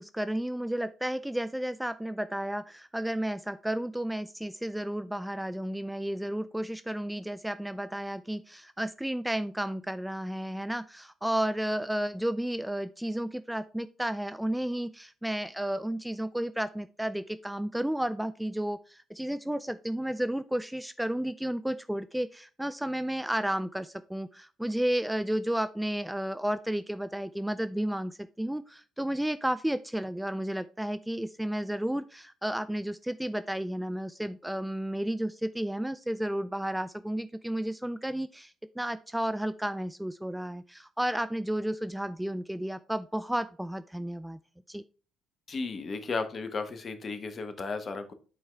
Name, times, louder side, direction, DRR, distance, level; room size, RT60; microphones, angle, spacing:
voice 1, 0.0-44.4 44.7-44.8, right 1 dB, 5° right, 12 dB, 0.4 m, -32 dB
voice 2, 45.5-48.1, left 4 dB, 40° left, 9 dB, 1.2 m, -34 dB
8.2 x 4.7 x 3.5 m, 0.36 s
figure-of-eight pair, 50°, 0 cm